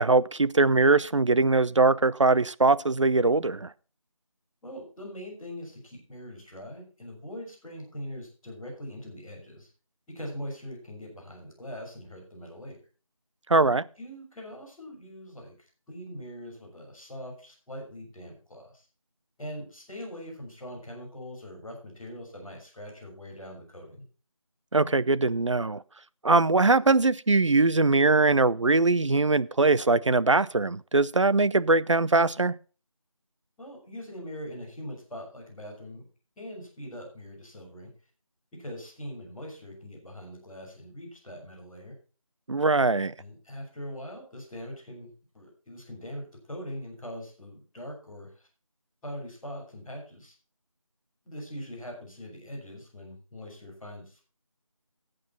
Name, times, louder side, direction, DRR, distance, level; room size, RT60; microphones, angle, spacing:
voice 1, 0.0-3.7 13.5-13.8 24.7-25.8 26.2-32.5 42.5-43.1, right 3 dB, 60° right, 0.5 m, -22 dB
voice 2, 4.6-9.7 10.1-12.8 14.0-15.5 15.9-18.8 19.4-24.0 33.6-36.0 36.3-37.9 38.6-41.9 43.2-45.1 45.3-48.5 49.0-50.3 51.2-54.2, equal, ahead, 3.3 m, -42 dB
12.0 x 7.8 x 5.4 m
figure-of-eight pair, 175°, 18 cm